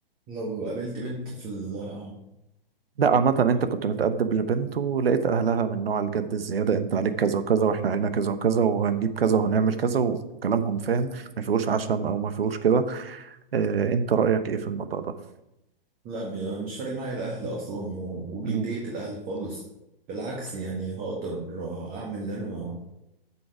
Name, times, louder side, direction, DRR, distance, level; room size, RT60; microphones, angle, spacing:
voice 1, 0.3-2.2 16.0-19.6 20.1-22.8, right 2 dB, 30° right, -2 dB, 1.8 m, -33 dB
voice 2, 3.0-15.0 18.4-18.6, right 6 dB, 75° right, 11 dB, 1.1 m, -24 dB
8.7 x 7.1 x 4.8 m, 0.88 s
hypercardioid pair, 125°, 29 cm